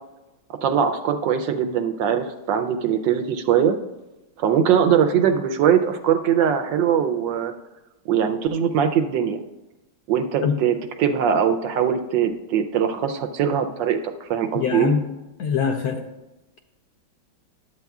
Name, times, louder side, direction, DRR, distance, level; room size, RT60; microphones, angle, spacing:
voice 1, 0.6-3.8 4.4-7.5 8.1-9.4 10.1-14.9, right 8 dB, 75° right, 7 dB, 1.2 m, -21 dB
voice 2, 14.5-15.0 15.4-16.0, left 6 dB, 70° left, 4 dB, 0.9 m, -23 dB
11.5 x 8.0 x 2.3 m, 1.0 s
omnidirectional pair, 2.1 m